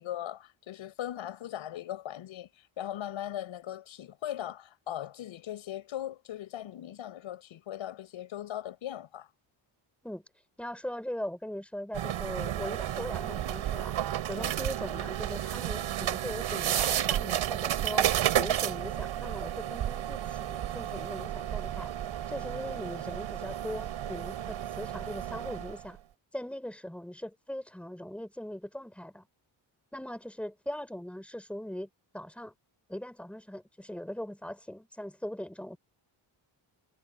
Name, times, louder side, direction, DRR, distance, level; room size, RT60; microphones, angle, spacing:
voice 1, 0.0-2.5 2.8-9.3 14.4-14.5, left 11 dB, 85° left, 7.1 m, -39 dB
voice 2, 10.6-14.0 14.2-21.9 22.3-26.0 26.3-29.3 29.9-31.9 32.1-32.5 32.9-35.8, left 1 dB, 5° left, 5.6 m, -40 dB
sound 1, 11.9-25.9, right 11 dB, 80° right, 2.9 m, -32 dB
cardioid pair, 115°, 46 cm